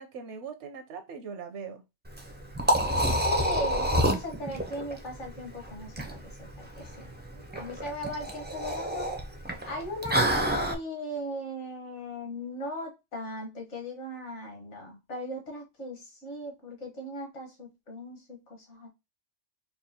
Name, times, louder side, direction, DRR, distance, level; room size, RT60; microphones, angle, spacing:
voice 1, 0.0-1.8 7.3-7.7, right 6 dB, 70° right, 0.9 m, -41 dB
Liquid, 2.1-10.7, equal, 15° right, 0.3 m, -28 dB
voice 2, 3.1-7.1 7.5-9.1 9.7-10.2 10.5-18.9, equal, 65° left, 1.7 m, -38 dB
4.7 x 2.3 x 2.7 m
omnidirectional pair, 1.3 m